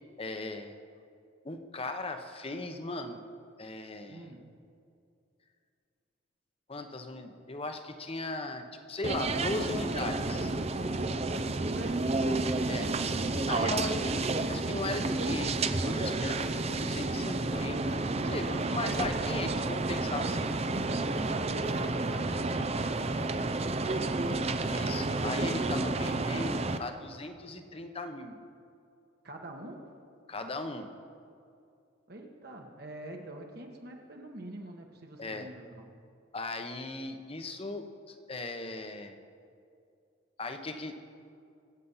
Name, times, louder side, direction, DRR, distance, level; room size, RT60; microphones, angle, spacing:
voice 1, 0.2-0.8 1.4-3.2 3.6-4.3 6.7-10.5 12.7-12.9 13.5-14.0 14.5-20.5 24.7-28.4 30.3-30.9 35.2-35.5 36.3-39.2 40.4-40.9, left 2 dB, 30° left, 7 dB, 1.0 m, -38 dB
voice 2, 4.1-4.4 11.3-14.2 19.9-24.6 29.2-29.9 32.1-35.9, right 1 dB, 50° right, 2 dB, 1.5 m, -45 dB
sound 1, 9.0-26.8, right 2 dB, 30° right, 0.6 m, -30 dB
24.0 x 8.4 x 5.7 m, 2.5 s
head